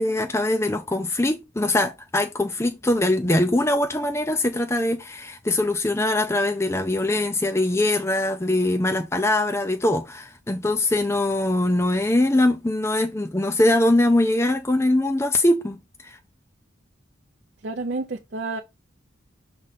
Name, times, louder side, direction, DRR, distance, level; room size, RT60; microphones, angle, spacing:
voice 1, 0.0-16.2, left 1 dB, 15° left, 0.5 m, -22 dB
voice 2, 17.6-18.6, right 3 dB, 55° right, 0.6 m, -29 dB
6.4 x 3.8 x 4.1 m
head